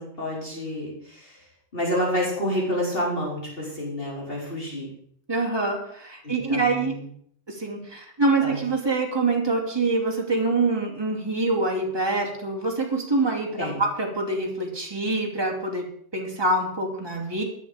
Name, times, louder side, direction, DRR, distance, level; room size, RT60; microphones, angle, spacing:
voice 1, 0.0-4.9 6.2-7.0 8.4-8.6 13.6-13.8, equal, 50° left, -4 dB, 4.5 m, -29 dB
voice 2, 5.3-6.9 7.5-15.9 16.1-17.4, right 3 dB, 20° right, 0 dB, 2.8 m, -25 dB
16.5 x 10.5 x 5.1 m, 0.63 s
omnidirectional pair, 1.3 m